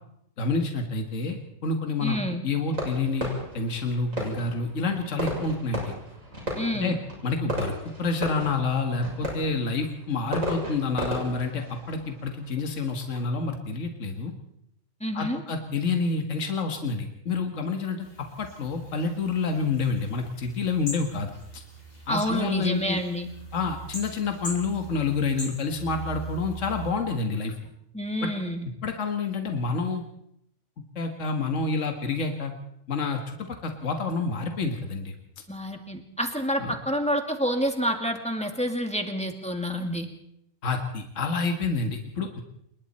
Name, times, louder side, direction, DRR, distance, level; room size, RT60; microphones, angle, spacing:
voice 1, 0.4-2.2 2.4-3.3 3.5-5.9 6.7-7.0 7.2-14.3 15.1-18.1 18.4-21.6 22.1-23.0 23.5-27.6 28.2-28.3 28.8-30.0 31.0-32.5 32.9-35.1 36.6-36.7 40.6-42.4, left 4 dB, 65° left, 4 dB, 2.0 m, -28 dB
voice 2, 2.0-2.4 6.6-7.0 15.0-15.4 22.1-23.3 27.9-28.7 35.5-40.1, equal, 5° left, 3 dB, 2.3 m, -28 dB
Fireworks, 2.7-13.3, equal, 75° right, 7.2 m, -35 dB
sound 1, 18.0-26.9, right 2 dB, 45° left, 5.0 m, -41 dB
27.5 x 22.0 x 4.3 m, 0.77 s
omnidirectional pair, 1.4 m